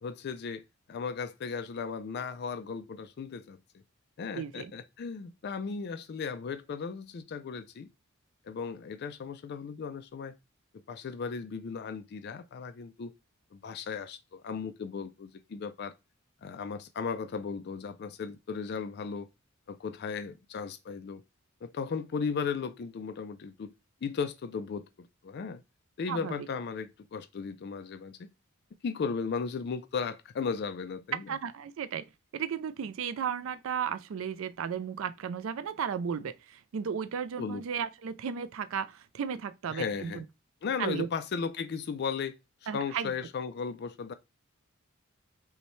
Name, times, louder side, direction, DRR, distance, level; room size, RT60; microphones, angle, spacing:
voice 1, 0.0-3.8 4.2-7.9 8.5-10.3 10.9-13.1 13.5-15.9 16.4-19.3 19.7-21.2 21.6-23.7 24.0-25.6 26.0-28.3 28.8-31.3 37.4-37.6 39.7-40.2 40.6-44.1, left 5 dB, 50° left, 0.3 m, -36 dB
voice 2, 4.3-4.7 26.1-26.4 31.3-32.1 32.3-40.2 40.8-41.1 42.7-43.1, right 7 dB, 65° right, 0.3 m, -34 dB
5.4 x 2.2 x 3.1 m
head